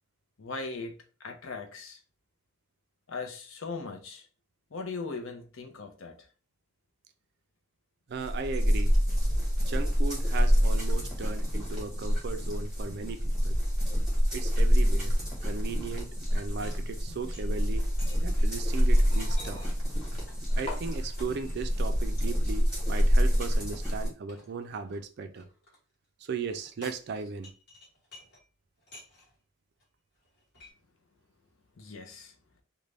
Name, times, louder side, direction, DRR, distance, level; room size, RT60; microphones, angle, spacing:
voice 1, 0.4-2.0 3.1-4.3 4.7-6.3 31.8-32.3, left 4 dB, 70° left, 0.6 m, -39 dB
voice 2, 8.1-8.9 9.7-13.6 14.3-15.1 15.4-17.9 18.2-19.6 20.6-25.5 26.2-27.5, right 4 dB, 50° right, 0.4 m, -37 dB
sound 1, 8.2-24.1, equal, 5° right, 1.1 m, -26 dB
sound 2, 16.3-21.7 22.2-22.6 23.0-25.8 26.5-28.5 28.8-29.4 29.8-29.9 30.1-30.7, left 1 dB, 55° left, 1.2 m, -54 dB
sound 3, 19.0-21.9 23.0-23.1, left 1 dB, 30° left, 0.7 m, -45 dB
2.5 x 2.2 x 3.2 m
head